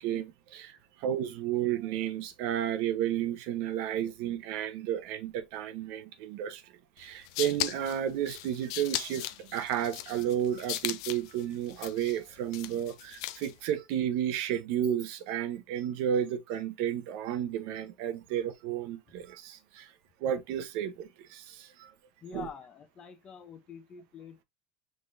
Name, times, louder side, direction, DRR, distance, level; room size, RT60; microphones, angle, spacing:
voice 1, 0.0-6.6 7.0-19.9 20.2-21.9 22.3-22.5, right 10 dB, 65° right, 0.8 m, -32 dB
sound 1, 7.0-13.6, left 14 dB, 80° left, 0.5 m, -38 dB
voice 2, 22.2-24.4, left 6 dB, 30° left, 0.7 m, -46 dB
4.9 x 3.7 x 2.6 m
cardioid pair, 155°, 3 cm